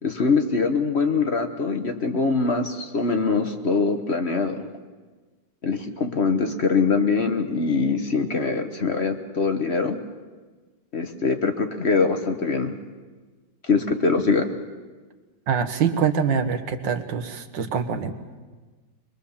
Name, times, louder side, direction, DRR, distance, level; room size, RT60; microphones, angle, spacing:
voice 1, 0.0-4.7 5.6-10.0 10.9-12.8 13.7-14.5, left 4 dB, 40° left, 6 dB, 1.2 m, -23 dB
voice 2, 15.5-18.1, right 7 dB, 85° right, 8 dB, 2.0 m, -24 dB
23.0 x 22.5 x 7.2 m, 1.3 s
omnidirectional pair, 2.0 m